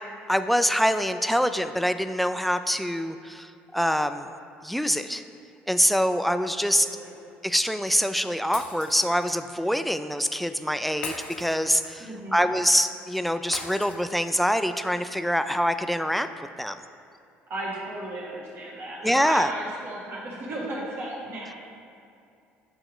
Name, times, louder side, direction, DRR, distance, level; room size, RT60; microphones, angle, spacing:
voice 1, 0.3-4.3 4.6-5.2 5.7-6.9 7.4-16.3 16.6-16.8 19.0-19.5, equal, ahead, 9 dB, 0.3 m, -25 dB
voice 2, 6.8-7.1 12.0-12.5 17.5-21.6, right 1 dB, 50° right, -5 dB, 1.4 m, -35 dB
Shatter, 8.5-9.4 11.0-12.1 13.5-14.5, left 5 dB, 90° left, 0.6 m, -39 dB
7.8 x 2.9 x 4.9 m, 2.5 s
hypercardioid pair, 65°, 5 cm